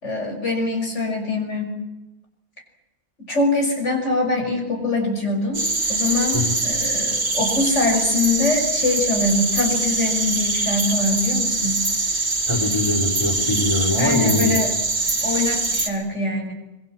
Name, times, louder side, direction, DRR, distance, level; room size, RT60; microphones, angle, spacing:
voice 1, 0.0-1.7 3.2-5.6 5.9-11.8 14.0-14.7 15.2-16.5, left 2 dB, 80° left, 2 dB, 6.3 m, -23 dB
sound 1, 5.5-15.9, right 3 dB, 65° right, 3.0 m, -23 dB
voice 2, 12.5-14.6, left 1 dB, 25° left, 1 dB, 4.4 m, -22 dB
25.5 x 23.5 x 7.5 m, 0.99 s
omnidirectional pair, 1.2 m